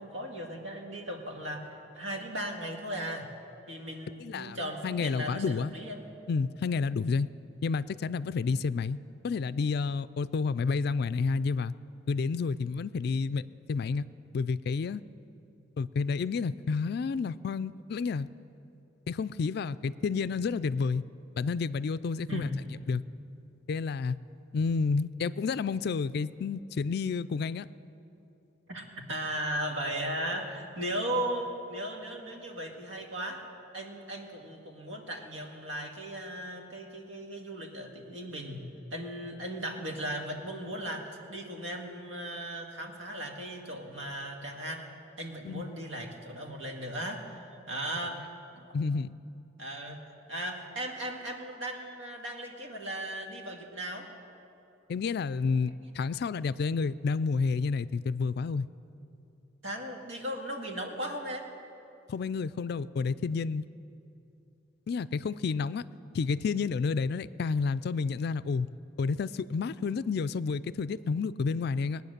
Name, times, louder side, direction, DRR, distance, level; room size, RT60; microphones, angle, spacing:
voice 1, 0.0-3.3 3.7-6.0 22.3-22.6 28.7-33.4 33.7-44.9 45.2-48.7 49.6-50.0 50.3-54.1 59.6-61.5 70.9-71.0, right 1 dB, 85° right, 1 dB, 1.9 m, -37 dB
voice 2, 4.2-4.6 4.8-5.7 6.3-7.3 7.6-9.0 9.2-11.7 12.1-14.1 14.3-15.0 15.8-18.3 19.1-21.0 21.4-22.5 22.9-23.0 23.7-24.2 24.5-27.7 45.4-45.6 48.7-49.1 54.9-58.7 62.1-63.6 64.9-65.8 66.1-68.7 69.0-72.0, left 4 dB, 55° left, 16 dB, 0.3 m, -30 dB
20.5 x 9.3 x 6.6 m, 2.8 s
head